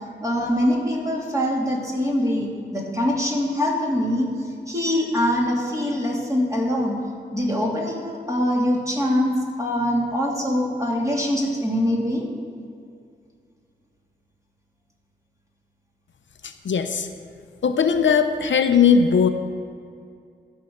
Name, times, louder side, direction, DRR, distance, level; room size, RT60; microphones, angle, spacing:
voice 1, 0.2-4.3 4.7-7.0 7.3-12.3, left 1 dB, 15° right, -3 dB, 3.0 m, -23 dB
voice 2, 16.4-17.1 17.6-19.3, left 6 dB, 70° left, 7 dB, 0.7 m, -19 dB
14.0 x 5.6 x 6.5 m, 2.4 s
cardioid pair, 50°, 20 cm